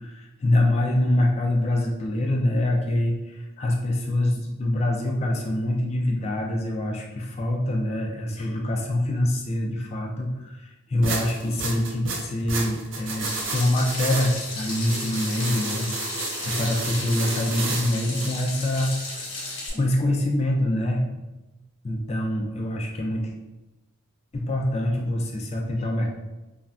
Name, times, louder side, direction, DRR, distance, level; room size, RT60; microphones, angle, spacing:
voice 1, 0.0-21.2 21.8-23.3 24.3-26.1, left 1 dB, 30° left, 1 dB, 0.3 m, -25 dB
sound 1, 11.0-18.3, right 3 dB, 60° right, 0.4 m, -32 dB
Water tap faucet / Sink (filling or washing), 13.2-19.7, left 2 dB, 55° left, 0.7 m, -35 dB
3.2 x 2.1 x 2.4 m, 1.1 s
head